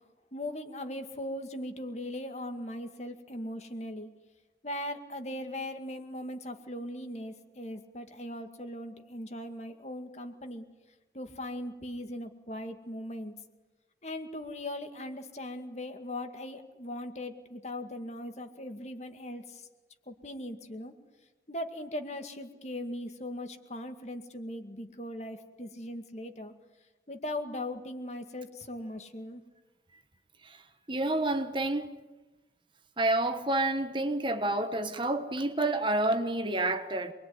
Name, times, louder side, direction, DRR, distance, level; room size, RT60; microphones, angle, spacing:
voice 1, 0.3-4.1 4.6-10.6 11.1-13.4 14.0-19.7 20.1-20.9 21.5-26.5 27.1-29.4, left 1 dB, 40° left, 2.2 m, -39 dB
voice 2, 30.9-31.9 33.0-37.1, right 2 dB, 25° right, 1.3 m, -29 dB
27.0 x 21.5 x 9.6 m
head